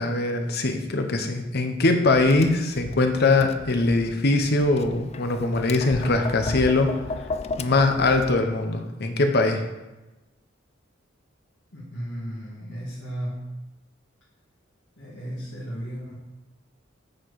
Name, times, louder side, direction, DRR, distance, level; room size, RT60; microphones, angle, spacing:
voice 1, 0.0-6.9 7.6-9.6, left 2 dB, 60° left, 6 dB, 0.9 m, -22 dB
Tap, 2.1-8.3, left 3 dB, 35° left, 0.3 m, -35 dB
voice 2, 11.7-13.6 15.0-16.1, equal, 80° left, -7 dB, 1.9 m, -34 dB
8.8 x 4.5 x 4.8 m, 1.0 s
head